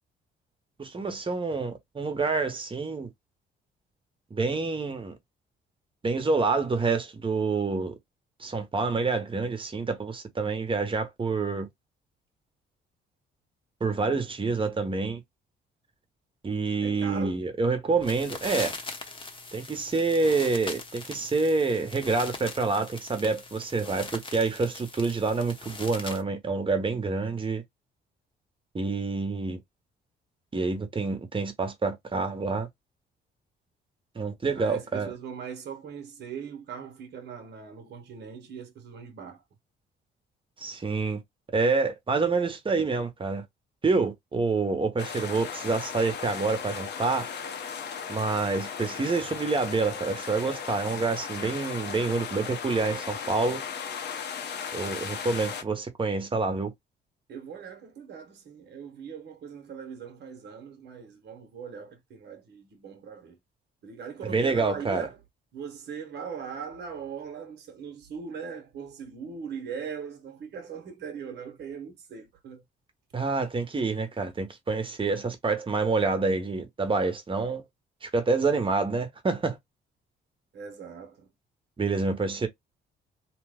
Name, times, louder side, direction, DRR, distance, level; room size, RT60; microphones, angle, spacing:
voice 1, 0.8-3.1 4.3-5.2 6.0-7.9 8.4-11.7 13.8-15.2 16.4-18.7 19.5-27.6 28.7-29.6 30.5-32.7 34.1-35.1 40.6-41.2 41.5-43.4 43.8-47.3 48.1-53.6 54.7-56.7 64.2-65.1 73.1-77.6 78.0-79.6 81.8-82.5, right 4 dB, 25° right, 0.9 m, -27 dB
voice 2, 16.8-17.4 34.5-39.4 57.3-63.4 63.8-65.2 65.5-72.6 80.5-81.3, right 7 dB, 60° right, 0.9 m, -40 dB
sound 1, 17.9-26.2, left 3 dB, 25° left, 0.9 m, -40 dB
sound 2, 45.0-55.6, left 7 dB, 60° left, 0.7 m, -36 dB
2.8 x 2.1 x 3.4 m
cardioid pair, 90°, 20 cm